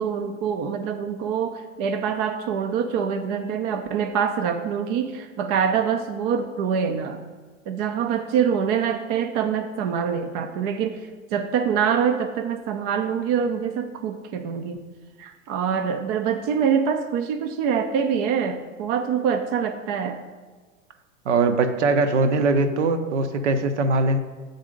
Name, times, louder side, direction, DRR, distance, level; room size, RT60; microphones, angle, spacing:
voice 1, 0.0-7.2 7.7-11.0 11.3-14.8 15.2-20.2, right 7 dB, 30° right, 7 dB, 0.4 m, -25 dB
voice 2, 21.3-24.2, right 3 dB, 65° right, 9 dB, 0.7 m, -21 dB
8.0 x 3.9 x 5.0 m, 1.4 s
figure-of-eight pair, 95°, 39 cm